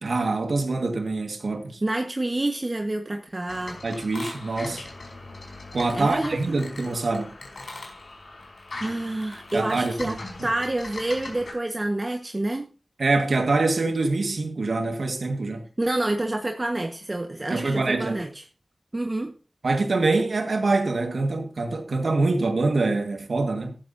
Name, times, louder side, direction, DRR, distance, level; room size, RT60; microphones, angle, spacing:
voice 1, 0.0-1.8 3.8-4.8 5.7-7.3 9.5-10.2 13.0-15.7 17.5-18.2 19.6-23.8, right 3 dB, 80° right, 1.8 m, -25 dB
voice 2, 1.8-3.8 5.9-6.6 8.8-12.7 15.8-18.4 18.9-19.3, right 2 dB, 40° right, 1.4 m, -28 dB
sound 1, 3.5-11.5, left 2 dB, 80° left, 5.2 m, -40 dB
14.0 x 13.0 x 2.7 m
cardioid pair, 45°, 0 cm